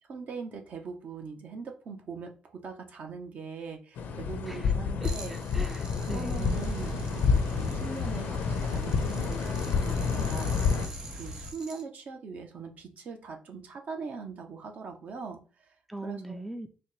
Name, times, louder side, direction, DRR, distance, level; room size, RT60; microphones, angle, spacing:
voice 1, 0.1-5.3 6.1-7.3 7.5-10.6 11.1-15.7 16.0-16.4, right 5 dB, 55° right, 0.8 m, -41 dB
sound 1, 4.0-10.9, left 5 dB, 75° left, 0.6 m, -29 dB
voice 2, 5.0-6.8 15.9-16.7, right 1 dB, 5° right, 0.4 m, -40 dB
sound 2, 5.0-11.8, right 2 dB, 30° right, 0.9 m, -47 dB
sound 3, 6.4-11.5, equal, 85° right, 1.3 m, -39 dB
4.2 x 2.2 x 3.1 m
cardioid pair, 85°, 3 cm